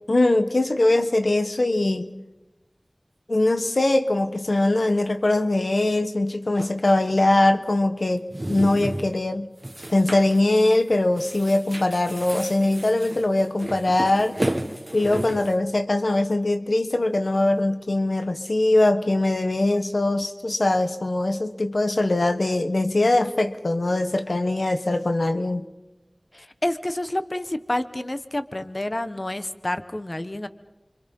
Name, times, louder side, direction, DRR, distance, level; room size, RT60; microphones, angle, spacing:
voice 1, 0.1-2.1 3.3-9.5 9.9-14.4 14.9-25.7, left 2 dB, 80° left, 9 dB, 1.3 m, -22 dB
sound 1, 6.6-6.8 8.2-9.2 9.6-10.4 10.7-10.9 11.2-15.5, right 1 dB, 30° right, 1.8 m, -32 dB
voice 2, 26.3-30.5, left 1 dB, 45° left, 11 dB, 1.3 m, -29 dB
29.5 x 25.0 x 5.5 m, 0.98 s
wide cardioid pair, 40°, 0 cm